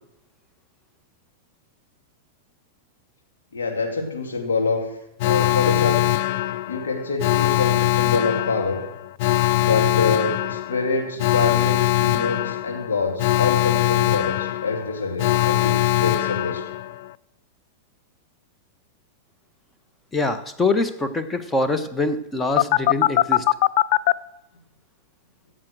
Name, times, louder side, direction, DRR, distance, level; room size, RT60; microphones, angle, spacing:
voice 1, 3.5-4.9 5.2-6.0 6.7-8.8 9.6-16.6, left 4 dB, 80° left, 2 dB, 2.9 m, -25 dB
Alarm, 5.2-17.1 22.6-24.1, left 15 dB, 55° left, 0.4 m, -21 dB
voice 2, 20.1-23.4, left 3 dB, 15° left, 10 dB, 1.3 m, -24 dB
14.5 x 7.7 x 6.2 m, 0.86 s
hypercardioid pair, 100°, 0 cm